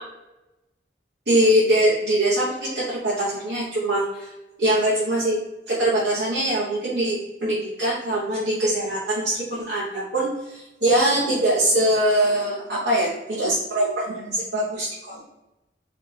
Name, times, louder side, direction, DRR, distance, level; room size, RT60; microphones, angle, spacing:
voice 1, 1.3-4.3 4.6-5.4 5.7-15.2, right 1 dB, 65° right, -8 dB, 1.2 m, -22 dB
4.6 x 3.4 x 2.9 m, 0.97 s
head